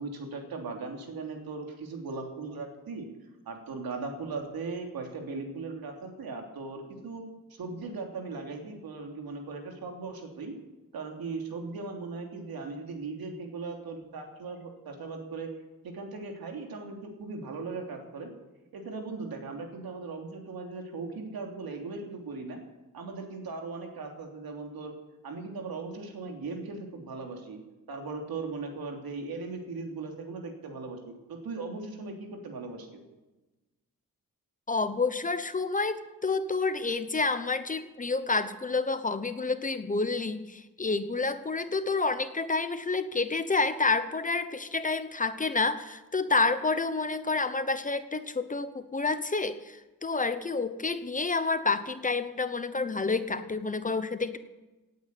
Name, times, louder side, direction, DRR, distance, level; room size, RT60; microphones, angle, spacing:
voice 1, 0.0-3.0 3.4-7.2 7.5-10.5 10.9-15.5 15.8-18.3 18.7-22.6 22.9-24.9 25.2-27.6 27.9-31.0 31.3-33.0, right 3 dB, 85° right, 3 dB, 3.3 m, -38 dB
voice 2, 34.7-54.4, left 3 dB, 20° left, 11 dB, 0.9 m, -29 dB
18.0 x 9.2 x 8.4 m, 1.1 s
wide cardioid pair, 165°, 35 cm